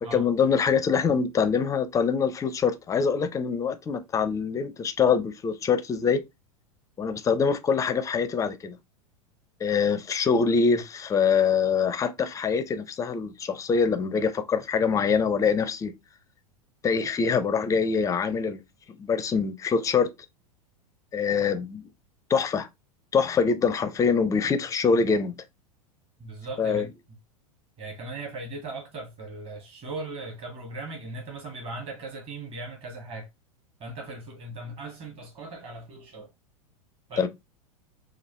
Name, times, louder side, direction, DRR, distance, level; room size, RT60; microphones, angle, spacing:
voice 1, 0.1-6.2 7.0-8.8 9.6-15.9 16.8-18.6 19.0-20.1 21.1-21.9 22.3-22.7 23.1-25.3 26.6-26.9 37.2-37.3, left 5 dB, 15° left, 0.5 m, -24 dB
voice 2, 26.2-26.9 27.8-33.3 33.8-36.3 37.1-37.3, right 2 dB, 30° right, 1.6 m, -38 dB
4.6 x 2.4 x 2.9 m
figure-of-eight pair, 90°, 19 cm